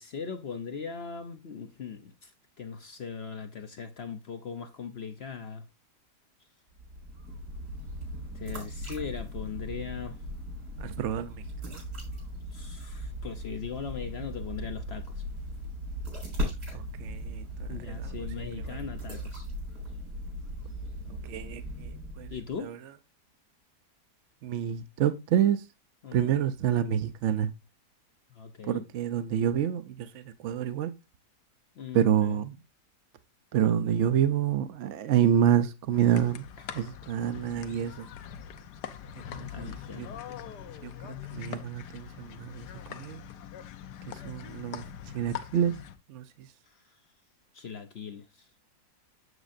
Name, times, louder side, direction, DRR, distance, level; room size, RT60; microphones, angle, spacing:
voice 1, 0.0-2.3 2.6-5.7 8.3-10.2 10.8-11.0 12.5-15.2 17.7-19.5 22.3-22.8 26.0-26.3 28.3-28.8 31.8-32.4 39.5-40.4 46.7-47.0 47.5-48.5, left 6 dB, 55° left, 0.7 m, -39 dB
sound 1, 6.7-22.6, equal, 85° right, 4.9 m, -38 dB
voice 2, 10.8-11.8 16.7-18.8 21.2-22.3 22.6-22.8 24.4-25.7 26.1-27.5 28.6-30.9 31.9-32.6 33.5-36.5 36.7-38.1 39.3-40.1 40.8-43.2 44.1-44.8 45.1-45.7 46.1-46.5, right 9 dB, 65° right, 0.7 m, -28 dB
sound 2, 35.9-46.0, left 9 dB, 90° left, 1.3 m, -42 dB
8.0 x 7.4 x 2.5 m
omnidirectional pair, 1.7 m